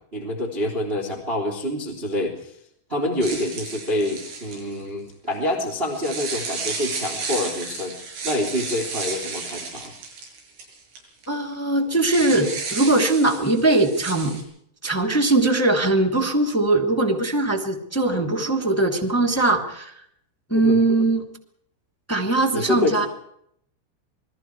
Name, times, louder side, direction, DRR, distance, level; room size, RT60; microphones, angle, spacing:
voice 1, 0.0-2.5 2.9-8.0 8.2-9.9 20.5-20.8 22.5-23.1, left 1 dB, 15° right, 2 dB, 2.9 m, -27 dB
sound 1, 3.2-4.8 5.8-11.0 11.2-11.3 12.0-14.4, right 4 dB, 75° right, 9.5 m, -33 dB
voice 2, 11.3-14.4 14.8-19.9 20.5-21.2 22.1-23.1, right 2 dB, 10° left, 1 dB, 1.0 m, -21 dB
28.5 x 21.5 x 4.8 m, 0.71 s
omnidirectional pair, 5.5 m